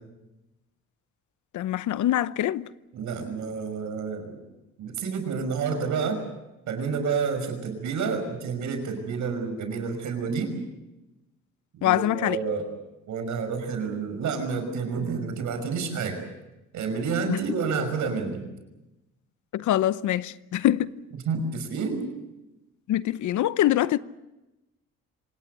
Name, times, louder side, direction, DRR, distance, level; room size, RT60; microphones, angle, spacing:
voice 1, 1.5-2.7 11.8-12.4 17.3-17.4 19.5-20.9 22.9-24.0, left 13 dB, 75° left, 0.8 m, -24 dB
voice 2, 2.9-4.4 4.8-6.2 6.7-10.5 11.8-12.7 13.1-16.2 16.7-18.4 21.3-22.0, right 5 dB, 75° right, 5.7 m, -29 dB
26.0 x 18.5 x 8.1 m
cardioid pair, 90°, 30 cm